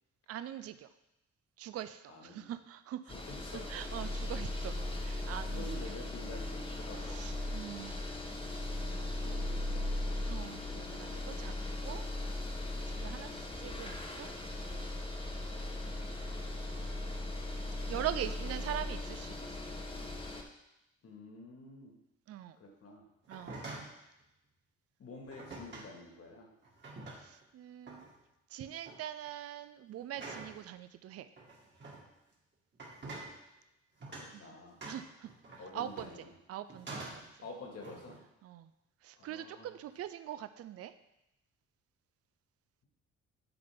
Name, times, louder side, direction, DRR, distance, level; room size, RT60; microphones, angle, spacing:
voice 1, 0.3-0.9 1.6-3.1 3.5-5.6 7.0-7.9 10.3-11.5 11.8-12.0 12.9-14.3 17.9-19.7 22.3-22.6 23.3-23.6 27.1-28.0 28.5-31.3 34.3-34.4 34.9-35.3 35.7-36.1 36.5-37.3 38.4-38.7 39.0-40.9, right 11 dB, 50° right, 11 dB, 0.5 m, -42 dB
voice 2, 2.1-2.5 3.1-3.7 5.5-7.1 8.8-10.2 17.9-18.3 21.0-21.9 22.5-23.1 25.0-26.5 34.4-34.8 35.6-36.3 37.4-38.2 39.2-39.7, left 2 dB, 50° left, 0 dB, 1.9 m, -49 dB
sound 1, 3.1-20.4, left 2 dB, 20° left, 1.1 m, -38 dB
sound 2, 23.2-24.0 25.3-25.9 26.6-27.4 27.9-28.2 28.6-29.0 30.1-30.6 31.4-32.0 32.7-33.3 34.0-34.3 34.8-36.3 36.7-37.3 37.8-38.2, right 2 dB, 35° right, 1.9 m, -46 dB
10.0 x 3.9 x 3.6 m, 0.88 s
cardioid pair, 90°, 30 cm